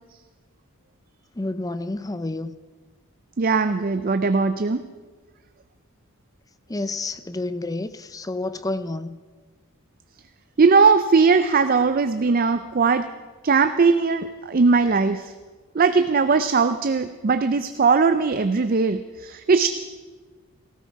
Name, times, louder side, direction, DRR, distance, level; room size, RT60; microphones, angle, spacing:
voice 1, 1.4-2.5 6.7-9.2, left 2 dB, 15° left, 13 dB, 0.5 m, -29 dB
voice 2, 3.4-4.9 10.6-13.1 13.4-15.3 15.8-19.7, right 4 dB, 40° right, 10 dB, 0.4 m, -19 dB
17.5 x 15.0 x 4.6 m, 1.4 s
head